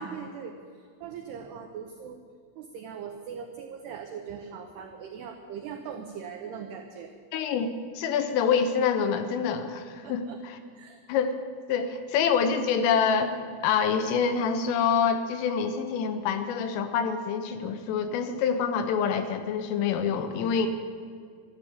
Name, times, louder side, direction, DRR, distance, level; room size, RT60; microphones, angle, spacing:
voice 1, 0.0-2.2 2.6-7.1 10.0-10.4 10.7-11.0 20.6-20.7, right 7 dB, 90° right, 5 dB, 2.3 m, -40 dB
voice 2, 7.3-10.6 11.1-11.4 11.7-20.7, left 6 dB, 85° left, 7 dB, 3.5 m, -26 dB
12.5 x 12.0 x 8.6 m, 2.1 s
omnidirectional pair, 5.9 m